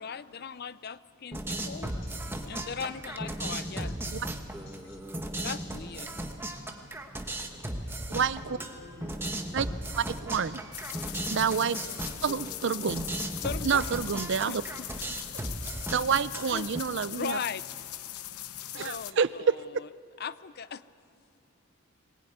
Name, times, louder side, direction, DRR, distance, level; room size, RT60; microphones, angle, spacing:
voice 1, 0.0-1.9 2.4-3.9 5.4-6.1 13.4-14.0 14.5-15.2 16.5-16.7 17.1-17.7 18.7-19.9 20.2-20.8, left 6 dB, 45° left, 15 dB, 0.5 m, -38 dB
sound 1, 1.3-16.8, right 1 dB, 10° right, 1.2 m, -36 dB
voice 2, 3.4-3.7 4.7-5.0 5.2-5.3 7.4-7.9 8.3-9.8 11.6-11.9, left 1 dB, 65° left, 1 dB, 5.5 m, -52 dB
voice 3, 10.0-10.6 11.3-11.8 12.2-13.1 13.7-14.6 15.9-17.4 18.7-19.6, right 6 dB, 55° right, 16 dB, 0.5 m, -28 dB
sound 2, 10.7-19.1, left 12 dB, 85° left, 0.9 m, -40 dB
20.5 x 20.0 x 9.4 m, 2.5 s
head